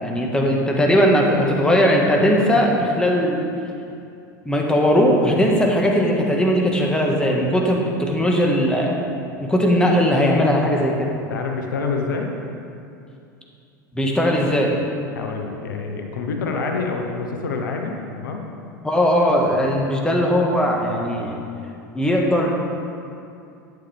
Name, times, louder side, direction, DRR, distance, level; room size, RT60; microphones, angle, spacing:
voice 1, 0.0-3.4 4.5-9.0 9.4-11.1 13.9-14.7 18.8-21.4 21.9-22.5, equal, 10° left, -1 dB, 1.7 m, -19 dB
voice 2, 11.3-12.3 15.1-18.4, left 4 dB, 75° left, 2 dB, 1.1 m, -27 dB
11.0 x 8.7 x 3.5 m, 2.5 s
hypercardioid pair, 85°, 11 cm